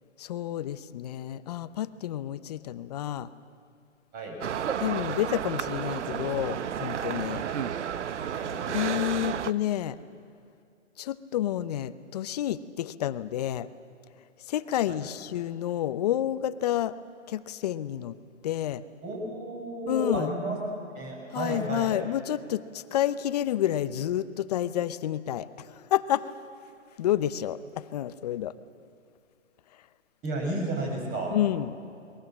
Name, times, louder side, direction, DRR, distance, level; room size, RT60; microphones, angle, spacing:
voice 1, 0.2-3.3 4.8-7.4 8.7-10.0 11.0-13.7 14.5-16.9 17.3-18.2 18.4-18.8 19.9-20.3 21.3-26.3 27.0-28.5 31.3-31.7, left 12 dB, 35° left, 14 dB, 0.8 m, -29 dB
sound 1, 4.4-9.5, right 8 dB, 70° right, 0.9 m, -32 dB
voice 2, 8.3-8.9 14.9-15.1 19.0-20.6 20.9-22.0 30.2-31.4, right 2 dB, 25° right, 1 dB, 6.6 m, -33 dB
29.5 x 22.0 x 7.5 m, 2.5 s
hypercardioid pair, 145°, 37 cm